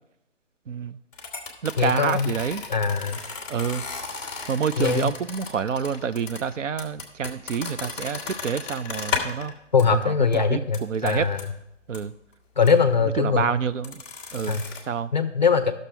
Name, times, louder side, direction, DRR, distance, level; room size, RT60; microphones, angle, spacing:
voice 1, 0.7-1.0 1.6-2.6 3.5-3.8 4.5-9.5 9.9-11.3 11.9-12.1 13.0-14.0 14.3-15.1, right 6 dB, 75° right, 13 dB, 0.6 m, -28 dB
sound 1, 1.1-9.5 9.8-10.0 10.3-10.4 10.7-11.4 11.9-12.0 12.6-12.8 13.8-14.8, left 4 dB, 5° left, 1.0 m, -34 dB
voice 2, 1.8-2.3 2.7-3.2 4.8-5.1 9.7-11.4 12.6-13.5 14.5-14.6 15.1-15.7, left 5 dB, 35° left, 10 dB, 0.5 m, -21 dB
12.5 x 6.5 x 3.4 m, 0.86 s
hypercardioid pair, 160°, 38 cm